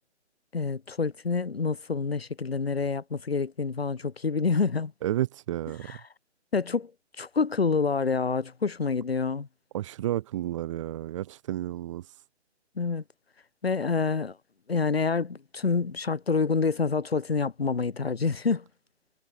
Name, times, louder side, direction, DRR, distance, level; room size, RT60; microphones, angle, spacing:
voice 1, 0.5-4.9 5.8-6.0 6.5-6.9 7.2-9.5 12.8-13.0 13.6-14.4 14.7-18.6, left 4 dB, 60° left, 6.6 m, -27 dB
voice 2, 5.0-5.9 9.7-12.2, right 13 dB, 25° right, 5.3 m, -31 dB
figure-of-eight pair, 150°, 35 cm